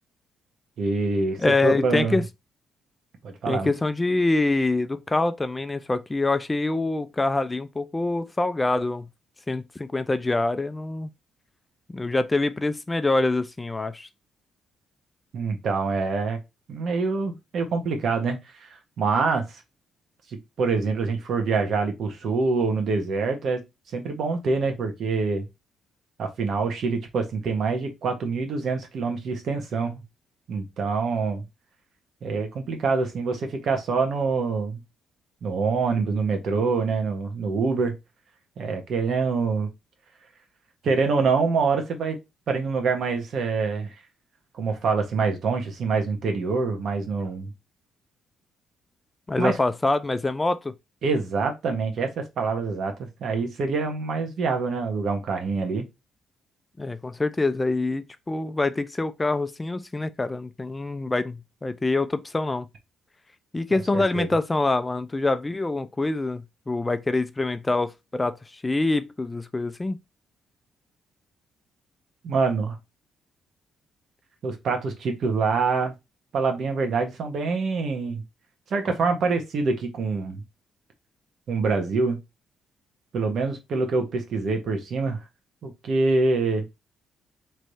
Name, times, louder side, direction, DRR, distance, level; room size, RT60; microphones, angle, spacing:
voice 1, 0.8-2.2 3.2-3.7 15.3-16.4 16.7-19.6 20.3-23.6 23.9-25.5 26.2-30.0 30.5-31.4 32.2-34.8 35.4-37.9 38.6-39.7 40.8-42.2 42.5-43.9 44.5-47.5 49.4-49.6 51.0-55.8 63.9-64.3 72.2-72.8 74.4-75.9 76.3-78.2 78.7-80.4 81.5-82.2 83.1-85.2 85.6-86.7, right 4 dB, 60° right, 1.3 m, -25 dB
voice 2, 1.4-2.2 3.5-9.1 9.5-11.1 11.9-14.1 49.3-50.7 56.8-62.6 63.5-70.0, left 2 dB, 20° left, 0.4 m, -25 dB
3.4 x 3.2 x 4.0 m
cardioid pair, 90°, 0 cm